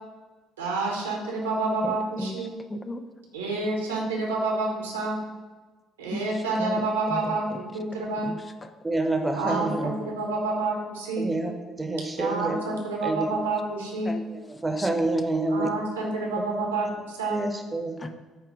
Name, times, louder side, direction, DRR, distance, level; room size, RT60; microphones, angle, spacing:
voice 1, 0.6-2.5 3.3-5.2 6.0-7.5 7.7-8.3 9.3-11.3 12.2-14.1 15.5-17.4, right 3 dB, 80° right, -1 dB, 1.3 m, -28 dB
voice 2, 1.8-3.0 6.1-7.6 8.2-8.7 9.8-9.9 14.0-14.2 14.5-14.9 15.6-15.7 18.0-18.1, left 2 dB, 25° left, 8 dB, 0.5 m, -37 dB
voice 3, 8.8-9.9 11.2-11.5 11.8-12.6 13.0-13.3 14.6-15.7 16.5-16.6 17.3-17.9, right 2 dB, 15° right, 4 dB, 1.0 m, -27 dB
8.5 x 3.2 x 5.0 m, 1.3 s
figure-of-eight pair, 50°, 0 cm